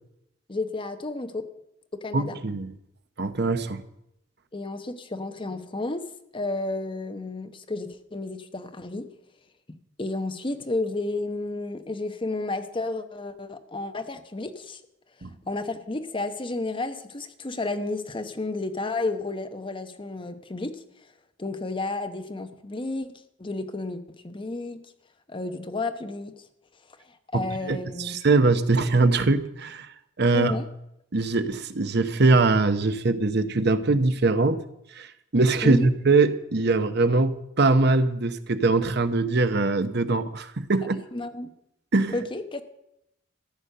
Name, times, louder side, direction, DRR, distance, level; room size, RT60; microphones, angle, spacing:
voice 1, 0.5-1.4 2.0-2.4 4.5-6.0 6.3-9.1 10.0-14.8 15.5-20.8 21.4-24.8 25.3-26.4 27.1-28.1 30.3-30.7 35.6-35.9 41.1-41.5 42.1-42.6, left 2 dB, 25° left, 8 dB, 0.9 m, -32 dB
voice 2, 2.1-2.7 3.2-3.8 15.2-15.3 27.3-29.9 30.2-30.6 31.1-34.6 34.9-41.0 41.9-42.2, right 3 dB, 60° right, 10 dB, 0.9 m, -22 dB
14.0 x 9.8 x 6.6 m, 0.81 s
head